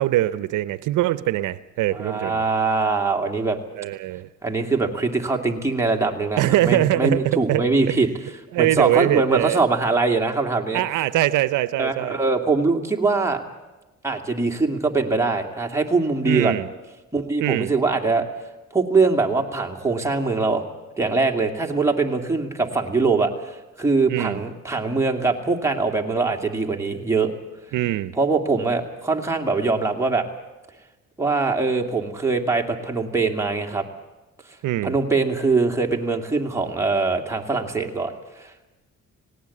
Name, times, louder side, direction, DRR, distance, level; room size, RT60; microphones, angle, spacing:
voice 1, 0.0-2.4 3.7-4.3 6.4-7.2 7.5-7.6 8.5-9.6 10.7-12.2 16.2-16.7 17.4-17.7 24.1-24.4 27.7-28.1 34.6-34.9, right 15 dB, 80° right, 15 dB, 0.7 m, -22 dB
voice 2, 1.9-3.6 4.4-8.1 8.6-10.8 11.8-13.4 14.0-16.6 17.1-18.2 18.7-20.6 21.0-27.3 28.2-30.3 31.2-33.8 34.8-38.7, right 3 dB, 10° right, 1 dB, 2.5 m, -22 dB
18.5 x 18.0 x 8.5 m, 1.1 s
cardioid pair, 90°, 30 cm